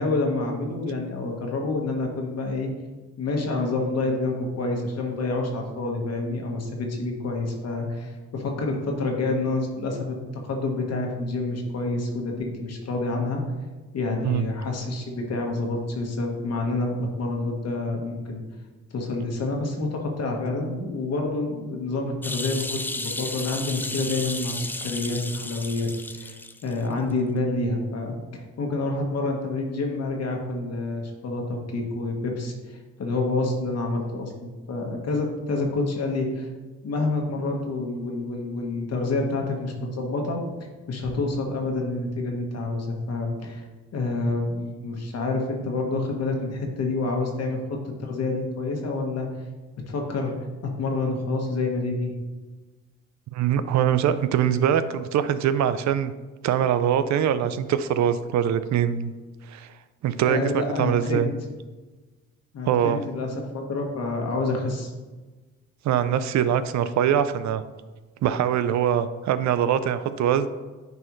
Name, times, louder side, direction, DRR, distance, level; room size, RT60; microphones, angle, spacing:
voice 1, 0.0-2.7 3.2-10.1 10.4-12.3 12.6-13.4 13.9-18.4 18.9-26.4 26.6-36.5 36.8-40.4 40.9-43.6 43.9-47.6 48.0-49.3 49.9-50.3 50.8-52.1 60.2-61.3 62.5-64.9, left 2 dB, 55° left, 1 dB, 1.4 m, -28 dB
sound 1, 22.2-26.8 27.1-27.2, left 2 dB, 5° left, 0.3 m, -33 dB
voice 2, 53.3-56.1 56.4-59.1 59.5-59.7 60.0-61.3 62.6-63.0 65.8-67.6 68.2-70.5, right 9 dB, 65° right, 13 dB, 0.5 m, -23 dB
9.4 x 4.6 x 3.1 m, 1.3 s
cardioid pair, 90°, 30 cm